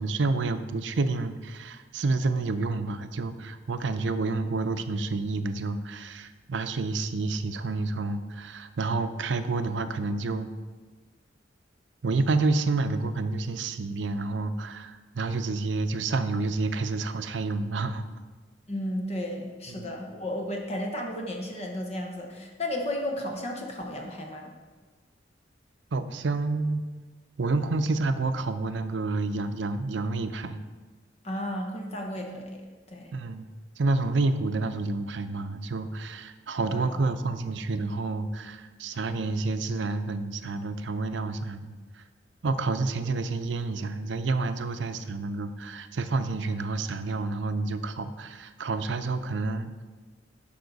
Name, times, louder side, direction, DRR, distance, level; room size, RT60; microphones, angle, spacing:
voice 1, 0.0-10.5 12.0-18.0 19.7-19.9 25.9-26.8 27.4-30.6 33.1-33.5 33.8-41.7 42.4-49.8, right 3 dB, 75° right, 10 dB, 0.6 m, -29 dB
voice 2, 18.7-24.5 31.2-32.6 32.9-33.1 36.7-36.9, left 1 dB, 35° left, 1 dB, 0.9 m, -33 dB
11.5 x 5.5 x 4.0 m, 1.4 s
head